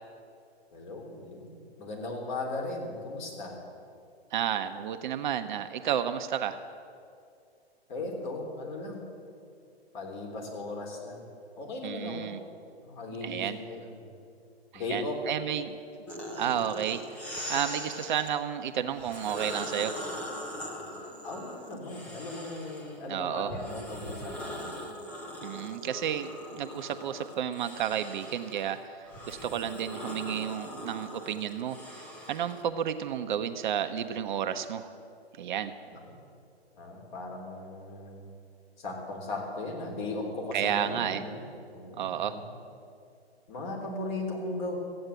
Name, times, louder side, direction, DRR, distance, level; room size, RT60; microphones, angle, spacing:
voice 1, 0.7-3.6 7.9-9.0 9.9-11.2 11.6-12.3 12.8-14.1 14.7-15.2 21.2-24.6 35.9-36.2 36.7-38.3 38.8-41.4 41.7-42.5 43.5-44.8, left 2 dB, 45° left, 1 dB, 3.3 m, -37 dB
voice 2, 4.3-6.6 11.8-12.4 13.2-13.6 14.9-15.8 16.4-17.2 17.5-20.0 23.1-23.5 25.4-34.9 35.4-35.7 40.5-41.2 42.0-42.4, right 9 dB, 50° right, 8 dB, 0.7 m, -32 dB
sound 1, 16.1-18.3 18.9-23.0 23.5-32.6, equal, 5° left, 0.3 m, -41 dB
14.5 x 8.8 x 7.9 m, 2.4 s
hypercardioid pair, 140°, 32 cm